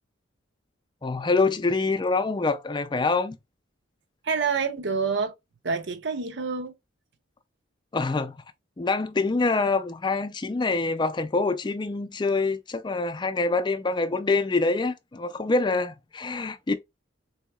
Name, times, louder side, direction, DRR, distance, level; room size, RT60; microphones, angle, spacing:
voice 1, 1.0-3.4 7.9-8.4 8.8-16.7, left 3 dB, 25° left, 0.4 m, -25 dB
voice 2, 4.2-5.3 5.6-6.7, right 5 dB, 60° right, 0.6 m, -27 dB
3.9 x 2.8 x 2.3 m
head